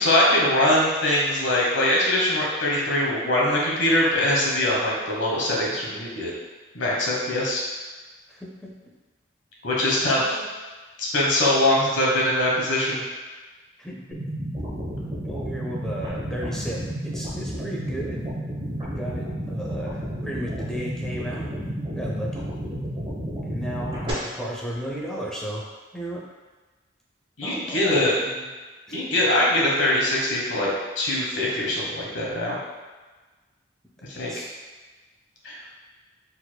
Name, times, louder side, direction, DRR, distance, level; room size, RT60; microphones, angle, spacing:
voice 1, 0.0-6.3 6.7-7.6 9.6-10.4 11.0-13.0 27.4-28.1 28.9-32.6 34.1-34.4 35.4-35.7, left 1 dB, 85° left, -4 dB, 1.1 m, -22 dB
voice 2, 8.3-8.7 9.9-10.5 13.8-14.2 15.2-18.2 18.8-21.5 21.9-22.5 23.4-25.7 25.9-26.2 27.4-28.5 28.9-29.0 34.1-34.5, equal, 5° left, -4 dB, 0.6 m, -34 dB
sound 1, 14.1-24.1, equal, 25° right, 0.9 m, -31 dB
4.5 x 4.1 x 2.2 m, 1.3 s
head